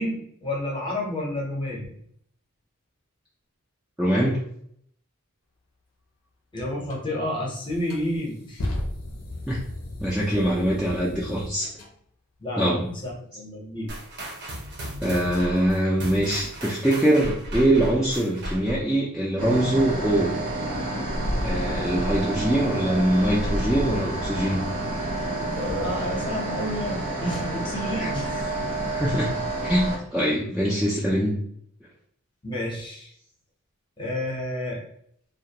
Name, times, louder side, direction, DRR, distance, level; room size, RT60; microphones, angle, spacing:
voice 1, 0.0-2.0 6.5-8.7 12.4-13.9 25.4-28.5 32.4-33.1 34.0-34.8, left 1 dB, 20° left, -3 dB, 0.7 m, -30 dB
voice 2, 4.0-4.4 9.5-9.6 10.0-11.7 12.6-12.9 15.0-20.3 21.4-24.6 28.0-28.1 28.9-29.3 29.6-31.4, right 1 dB, 5° right, -6 dB, 0.3 m, -23 dB
sound 1, 6.9-7.0 7.6-11.9, left 1 dB, 75° left, 0.5 m, -35 dB
sound 2, 13.9-19.0, right 1 dB, 50° right, 0.6 m, -35 dB
sound 3, 19.4-30.0, right 1 dB, 85° right, 1.0 m, -29 dB
2.3 x 2.1 x 2.7 m, 0.67 s
head